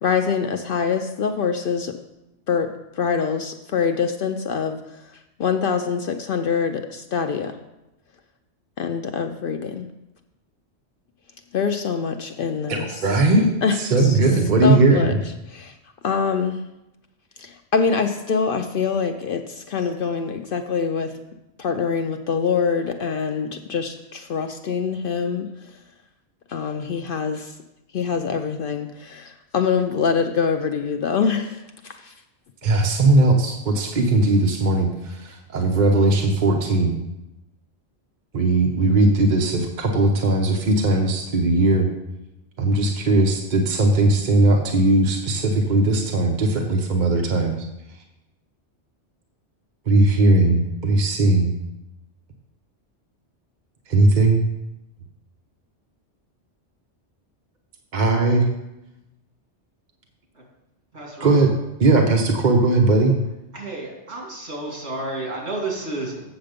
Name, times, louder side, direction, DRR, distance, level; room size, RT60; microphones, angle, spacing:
voice 1, 0.0-2.0 2.5-4.8 5.4-7.6 8.8-9.9 11.5-12.9 13.6-14.2 14.6-15.1 15.5-15.8 16.0-16.6 17.4-21.1 21.6-25.5 26.5-27.6 27.9-32.1, left 6 dB, 60° left, 6 dB, 0.6 m, -24 dB
voice 2, 12.7-13.5 13.8-15.2 32.6-37.0 38.3-41.9 42.6-47.6 49.9-51.5 53.9-54.4 57.9-58.5 61.2-61.5 61.8-63.1, right 2 dB, 45° right, 1 dB, 0.9 m, -18 dB
voice 3, 60.9-61.4 63.5-66.2, right 2 dB, 65° right, -2 dB, 2.7 m, -31 dB
8.0 x 6.8 x 5.1 m, 0.93 s
omnidirectional pair, 1.2 m